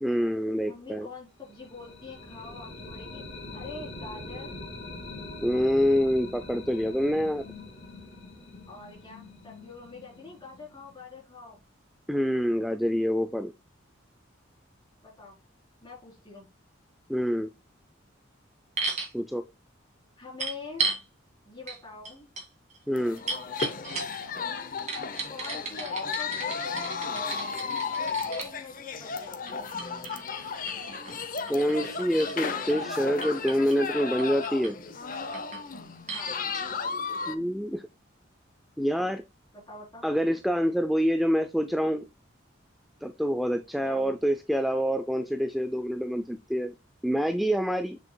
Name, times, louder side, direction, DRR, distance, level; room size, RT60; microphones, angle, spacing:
voice 1, 0.0-1.1 5.4-7.4 12.1-13.5 17.1-17.5 19.1-19.4 22.9-23.2 31.5-34.8 37.3-37.8 38.8-39.2 40.0-42.0 43.0-46.7 47.0-48.0, equal, ahead, 0.3 m, -26 dB
voice 2, 0.6-3.2 3.5-4.6 8.7-11.6 15.0-15.4 15.8-16.5 20.2-20.9 21.4-22.3 25.3-26.9 27.9-29.7 36.1-36.4 39.5-40.0 43.8-44.1, left 4 dB, 25° left, 4.0 m, -44 dB
sound 1, 1.4-11.2, left 2 dB, 65° left, 2.2 m, -43 dB
sound 2, 18.8-19.1 20.4-21.0 21.7-21.8 22.0-24.3 24.9-28.5 29.5-32.9 33.2-33.8 34.2-34.7 35.1-35.7 36.1-36.3 36.5-36.6, right 4 dB, 35° right, 2.1 m, -35 dB
sound 3, 23.0-37.4, left 5 dB, 45° left, 0.7 m, -34 dB
7.2 x 6.4 x 2.3 m
head